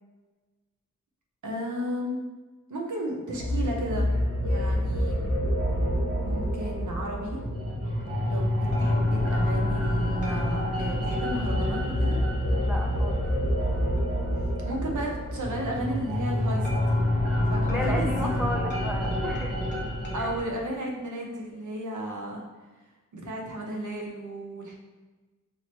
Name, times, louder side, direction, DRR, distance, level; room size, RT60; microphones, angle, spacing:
voice 1, 1.4-2.2 2.7-4.1 4.4-5.2 6.1-7.4 8.3-8.5 8.8-12.2 14.7-17.0 17.5-18.3 20.1-22.4 23.1-24.8, right 1 dB, 70° right, 0 dB, 0.8 m, -34 dB
sound 1, 3.4-20.4, left 1 dB, 45° right, 1.1 m, -27 dB
sound 2, 7.8-21.7, left 4 dB, 35° left, 0.9 m, -47 dB
voice 2, 12.5-13.3 14.2-14.3 17.7-19.6 20.2-20.3, left 1 dB, 5° right, 0 dB, 0.5 m, -34 dB
4.4 x 2.8 x 2.9 m, 1.3 s
wide cardioid pair, 95°, 32 cm